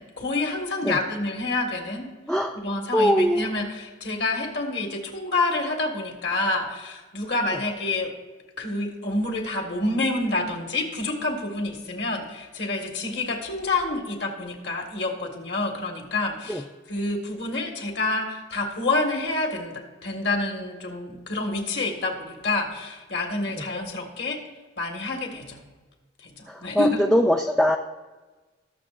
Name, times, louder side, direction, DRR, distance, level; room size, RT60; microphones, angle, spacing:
voice 1, 0.0-2.1 2.5-8.1 8.6-24.4 24.8-25.6 26.2-27.0, left 2 dB, 55° left, 3 dB, 1.7 m, -28 dB
voice 2, 2.3-2.6 2.9-3.4 16.5-16.6 26.5-27.8, equal, 5° left, 3 dB, 0.3 m, -21 dB
20.0 x 6.8 x 2.5 m, 1.3 s
head